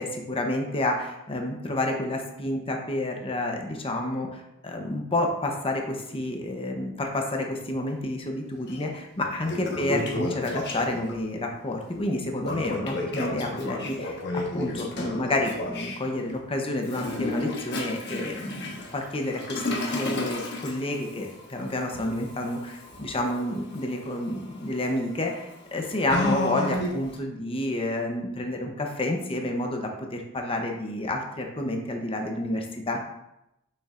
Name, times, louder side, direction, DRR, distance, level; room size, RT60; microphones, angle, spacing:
voice 1, 0.0-14.2 14.5-33.0, left 1 dB, 25° left, 2 dB, 0.8 m, -29 dB
Toilet flush, 8.7-8.8 9.2-11.1 12.4-16.0 16.8-27.2, left 1 dB, 55° left, 1.2 m, -33 dB
6.9 x 6.4 x 2.5 m, 0.86 s
head